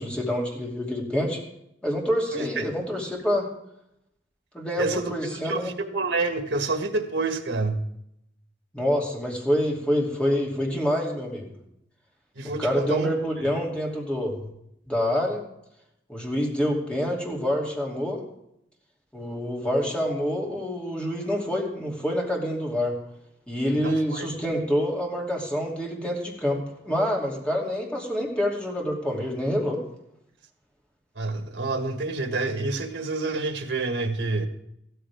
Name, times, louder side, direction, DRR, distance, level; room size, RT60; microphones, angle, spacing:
voice 1, 0.0-1.4 1.8-3.5 4.5-5.7 8.7-11.5 12.6-14.5 14.9-15.4 16.1-18.2 19.1-22.9 23.5-29.8, equal, 5° left, -2 dB, 2.9 m, -27 dB
voice 2, 2.3-2.7 4.8-5.1 5.4-7.8 12.4-13.1 23.8-24.3 31.2-34.5, right 3 dB, 80° right, 6 dB, 1.6 m, -28 dB
15.0 x 13.5 x 3.6 m, 0.78 s
head